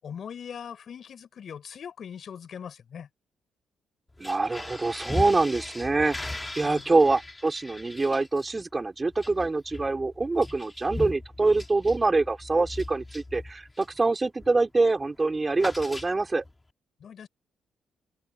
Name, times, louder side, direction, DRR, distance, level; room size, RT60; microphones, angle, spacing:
voice 1, 0.0-3.1 6.6-6.9 17.0-17.3, left 7 dB, 55° left, 6.8 m, -41 dB
sound 1, 4.1-14.0 14.4-14.7 14.9-16.5, left 2 dB, 15° left, 2.8 m, -39 dB
voice 2, 4.2-16.4, right 3 dB, 25° right, 4.3 m, -25 dB
cardioid pair, 90°, 0 cm